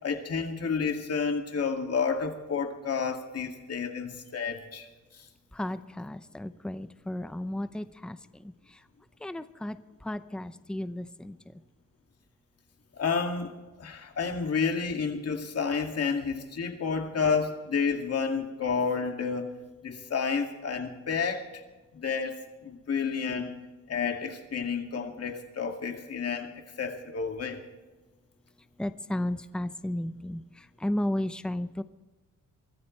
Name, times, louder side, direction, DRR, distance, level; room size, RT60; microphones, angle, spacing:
voice 1, 0.0-4.9 5.1-5.2 12.9-13.5 13.8-19.6 19.8-21.6 21.9-23.5 23.9-27.6, left 5 dB, 50° left, 4 dB, 2.3 m, -30 dB
voice 2, 5.5-8.2 8.4-8.5 9.2-9.8 10.0-11.4 28.8-30.4 30.8-31.8, left 1 dB, 5° left, 12 dB, 0.6 m, -33 dB
24.0 x 14.0 x 3.2 m, 1.2 s
cardioid pair, 120°, 31 cm